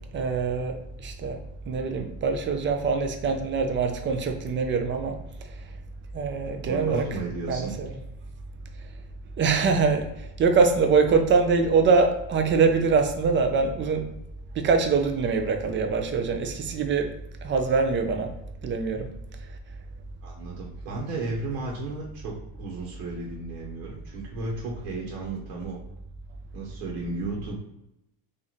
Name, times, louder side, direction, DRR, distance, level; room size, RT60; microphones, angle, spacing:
voice 1, 0.0-1.4 1.7-5.2 5.4-5.7 6.1-7.1 7.5-7.9 9.4-14.1 14.5-17.1 17.4-18.3 18.6-19.1, right 4 dB, 25° right, 5 dB, 0.4 m, -24 dB
voice 2, 6.6-7.7 20.2-25.8 26.5-27.6, right 3 dB, 75° right, -2 dB, 1.1 m, -34 dB
3.0 x 2.6 x 4.0 m, 0.85 s
supercardioid pair, 120°, 48 cm